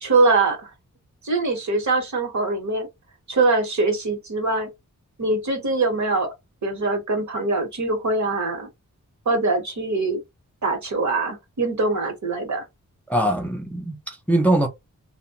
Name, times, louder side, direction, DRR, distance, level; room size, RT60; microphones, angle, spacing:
voice 1, 0.0-0.7 1.2-2.9 3.3-4.7 5.2-6.3 6.6-8.7 9.3-10.2 10.6-12.6, right 3 dB, 60° right, 1.0 m, -23 dB
voice 2, 13.1-14.7, right 1 dB, 5° left, 0.5 m, -22 dB
2.9 x 2.1 x 2.8 m
wide cardioid pair, 75°, 32 cm